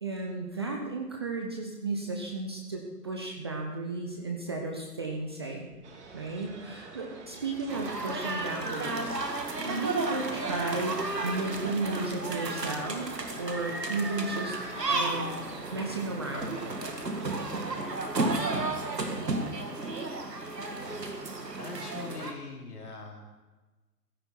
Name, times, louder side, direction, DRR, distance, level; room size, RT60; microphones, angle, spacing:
voice 1, 0.0-5.7 6.1-9.2 9.6-13.1 13.4-14.6 14.9-15.4 15.7-16.7, right 3 dB, 15° right, 1 dB, 0.6 m, -34 dB
sound 1, 5.8-17.9, right 3 dB, 45° right, 2.1 m, -45 dB
sound 2, 7.7-22.3, right 2 dB, 80° right, 2.0 m, -33 dB
voice 2, 21.6-23.4, left 3 dB, 65° left, 0 dB, 3.4 m, -42 dB
15.5 x 9.7 x 4.3 m, 1.2 s
figure-of-eight pair, 135°, 48 cm